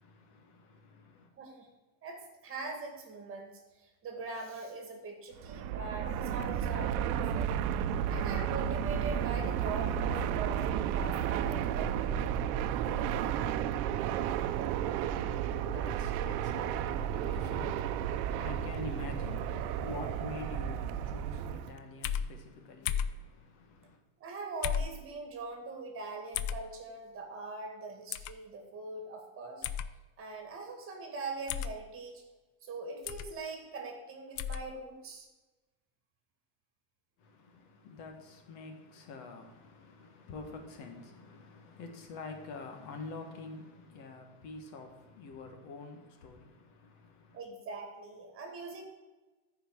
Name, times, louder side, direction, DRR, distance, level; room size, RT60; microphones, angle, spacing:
voice 1, 0.0-1.3 13.8-24.0 37.2-47.4, left 3 dB, 65° left, 1.9 m, -47 dB
voice 2, 1.4-1.7 2.0-3.5 3.8-7.5 8.1-12.4 24.2-29.7 30.2-32.2 32.6-35.3 47.3-48.8, right 3 dB, 30° right, 2.1 m, -42 dB
Fixed-wing aircraft airplane, 5.4-21.8, right 9 dB, 90° right, 0.7 m, -32 dB
sound 1, 6.0-13.1, left 3 dB, 90° left, 2.0 m, -57 dB
sound 2, 22.0-22.3 22.9-23.2 24.6-24.9 26.3-26.6 28.1-28.3 29.6-29.9 31.5-31.7 33.1-33.3 34.4-34.6, left 9 dB, 45° left, 0.5 m, -33 dB
14.0 x 4.9 x 4.7 m
cardioid pair, 160°, 43 cm